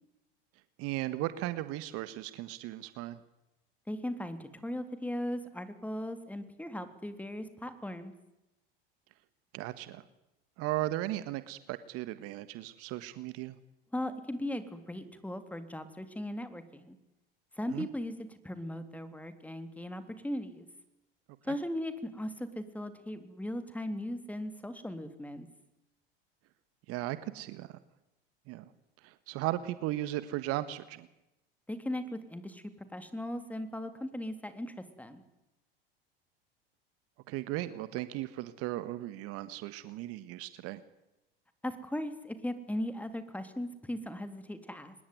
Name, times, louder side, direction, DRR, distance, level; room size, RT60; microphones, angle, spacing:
voice 1, 0.8-3.2 9.5-10.0 10.6-13.6 17.7-17.9 26.9-27.7 28.5-28.6 29.0-31.1 37.3-40.8, right 15 dB, 50° right, 13 dB, 1.6 m, -36 dB
voice 2, 3.9-8.1 13.9-16.9 17.5-20.7 21.4-25.5 31.7-35.2 41.6-44.9, left 1 dB, 5° left, 10 dB, 3.4 m, -38 dB
25.0 x 21.0 x 9.5 m, 0.92 s
hypercardioid pair, 80°, 29 cm